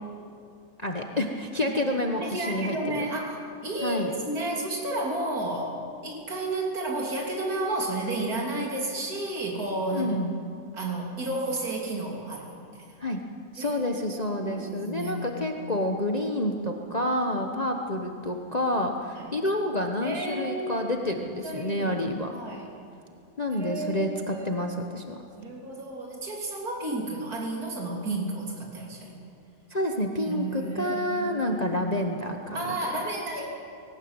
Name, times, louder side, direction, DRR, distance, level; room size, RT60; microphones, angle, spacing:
voice 1, 0.8-3.0 3.8-4.1 9.9-10.3 13.0-13.2 13.5-22.3 23.4-25.2 29.7-32.7, left 1 dB, 25° left, 3 dB, 1.2 m, -29 dB
voice 2, 2.2-10.1 10.7-12.6 13.6-13.8 14.1-15.5 17.5-17.6 19.2-19.3 20.0-21.1 21.4-22.0 22.3-22.7 23.6-24.5 25.3-29.1 30.3-31.6 32.5-33.5, right 2 dB, 65° right, -1 dB, 3.6 m, -32 dB
19.5 x 18.5 x 8.9 m, 2.4 s
omnidirectional pair, 1.7 m